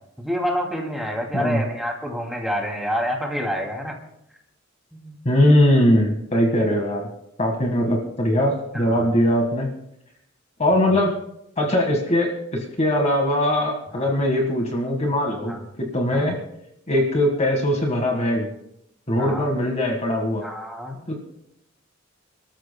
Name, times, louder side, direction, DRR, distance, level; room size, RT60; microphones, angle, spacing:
voice 1, 0.2-4.0 4.9-5.2 8.7-9.1 10.8-11.0 13.9-14.2 15.5-15.6 16.1-16.3 19.2-19.6 20.4-21.0, equal, ahead, 0 dB, 2.6 m, -28 dB
voice 2, 5.2-7.1 7.4-9.7 10.6-11.1 11.6-16.4 16.9-18.5 19.1-20.5 21.1-21.2, left 1 dB, 35° left, 2 dB, 1.7 m, -21 dB
29.0 x 13.5 x 2.2 m, 0.77 s
head